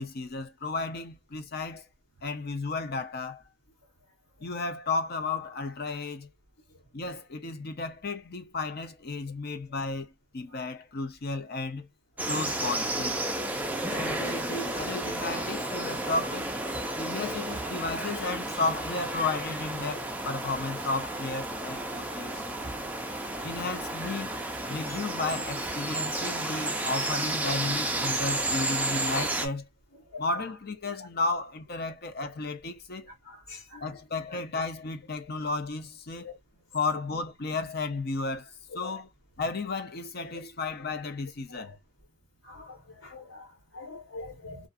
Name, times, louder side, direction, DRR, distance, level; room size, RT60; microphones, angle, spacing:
voice 1, 0.0-1.9 2.2-3.4 4.4-6.3 6.9-11.9 12.3-13.2 13.9-16.5 17.0-22.4 23.4-24.4 24.7-29.7 30.2-33.1 33.8-36.3 36.7-39.1 39.4-41.7, left 3 dB, 50° left, 0.6 m, -33 dB
sound 1, 12.2-29.5, right 2 dB, 10° right, 0.4 m, -32 dB
voice 2, 22.6-23.0 23.3-23.4 24.9-25.0 29.9-30.2 33.2-33.8 34.3-34.4 36.2-36.3 38.8-39.0 41.5-41.7 42.4-44.7, left 3 dB, 90° left, 1.5 m, -45 dB
2.5 x 2.3 x 2.4 m
head